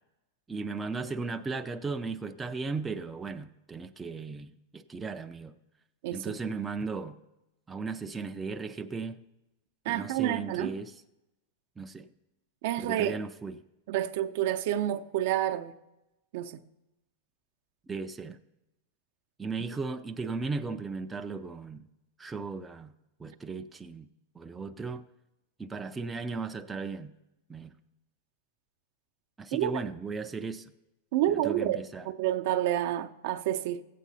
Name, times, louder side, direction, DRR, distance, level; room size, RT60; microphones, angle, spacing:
voice 1, 0.5-5.6 6.1-7.2 7.7-9.2 9.9-11.0 11.8-12.1 12.8-13.6 17.9-18.4 19.4-21.9 22.2-22.9 23.2-24.1 24.3-25.0 25.6-27.1 27.5-27.7 29.4-30.7 31.3-32.1, right 4 dB, 10° right, 0.4 m, -36 dB
voice 2, 6.0-6.4 9.8-10.7 12.6-13.2 13.9-15.7 16.3-16.6 29.5-29.7 31.1-31.8 32.2-33.8, right 12 dB, 60° right, 0.6 m, -29 dB
14.0 x 8.4 x 4.1 m
supercardioid pair, 140°, 0 cm